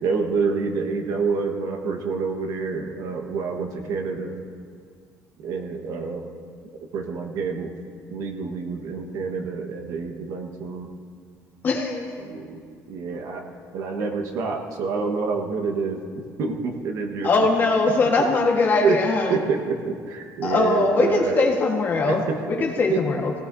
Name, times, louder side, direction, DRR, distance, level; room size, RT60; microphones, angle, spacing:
voice 1, 0.0-4.4 5.4-6.3 6.7-7.7 8.1-10.9 12.2-12.6 12.9-13.4 13.7-17.3 18.8-19.0 19.3-21.5 22.1-22.4 22.9-23.0, right 4 dB, 65° right, 3 dB, 1.4 m, -27 dB
voice 2, 11.6-12.2 14.0-14.1 17.2-19.4 20.4-22.2 22.5-23.3, left 3 dB, 30° left, 1 dB, 1.5 m, -21 dB
18.0 x 17.0 x 2.7 m, 2.1 s
cardioid pair, 160°, 6 cm